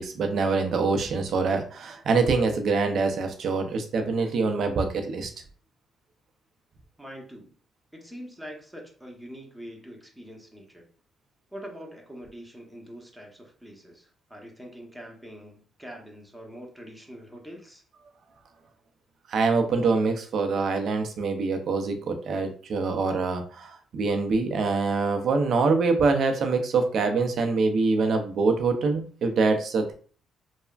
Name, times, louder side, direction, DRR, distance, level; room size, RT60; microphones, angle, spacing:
voice 1, 0.0-5.3 19.3-29.9, right 4 dB, 65° right, 5 dB, 0.5 m, -25 dB
voice 2, 7.0-7.5 7.9-10.9 11.5-17.8, equal, 5° right, 0 dB, 0.8 m, -44 dB
3.3 x 2.0 x 2.4 m, 0.42 s
cardioid pair, 90°, 0 cm